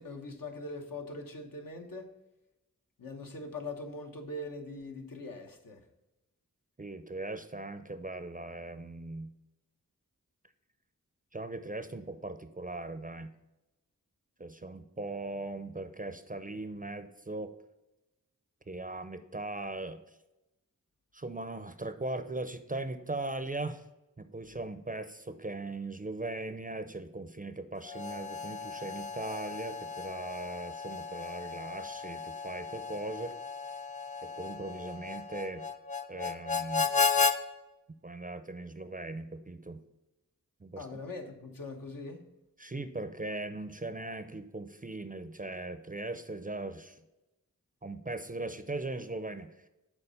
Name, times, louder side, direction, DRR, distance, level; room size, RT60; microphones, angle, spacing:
voice 1, 0.0-2.1 3.0-5.8 40.8-42.3, left 2 dB, 75° left, 3 dB, 1.1 m, -42 dB
voice 2, 6.8-9.3 11.3-13.3 14.4-17.5 18.7-20.0 21.1-23.8 24.2-33.3 34.2-35.7 36.1-37.0 38.0-39.8 40.6-40.9 42.6-47.0 47.8-49.5, right 2 dB, 25° right, 10 dB, 0.5 m, -39 dB
Harmonica, 27.8-37.4, left 5 dB, 20° left, 0.5 m, -34 dB
6.8 x 4.2 x 5.5 m, 0.98 s
cardioid pair, 45°, 34 cm